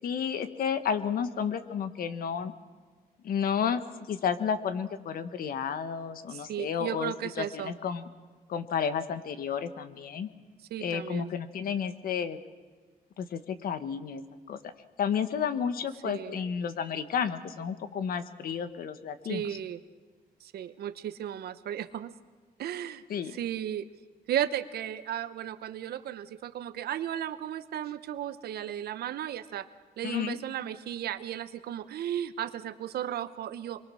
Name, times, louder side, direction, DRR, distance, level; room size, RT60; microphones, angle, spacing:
voice 1, 0.0-2.5 3.2-3.8 4.1-8.0 8.5-10.3 10.8-12.4 13.2-14.2 14.5-14.6 15.0-19.4 23.1-23.3 30.0-30.4, left 7 dB, 70° left, 11 dB, 1.5 m, -31 dB
voice 2, 6.3-7.7 10.7-11.3 16.0-16.4 19.3-19.8 20.4-22.1 22.6-23.9 24.3-29.7 30.0-33.8, right 10 dB, 85° right, 13 dB, 1.0 m, -35 dB
25.5 x 23.0 x 6.4 m, 1.5 s
cardioid pair, 145°, 16 cm